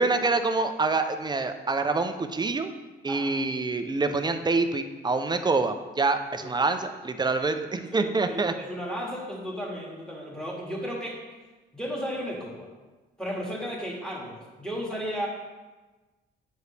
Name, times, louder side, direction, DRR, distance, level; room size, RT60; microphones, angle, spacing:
voice 1, 0.0-2.7 3.0-8.5, right 3 dB, 20° right, 8 dB, 0.5 m, -26 dB
voice 2, 7.9-11.2 11.7-12.7 13.2-15.3, equal, 5° left, -3 dB, 1.9 m, -34 dB
8.0 x 4.7 x 3.3 m, 1.2 s
cardioid pair, 90°, 20 cm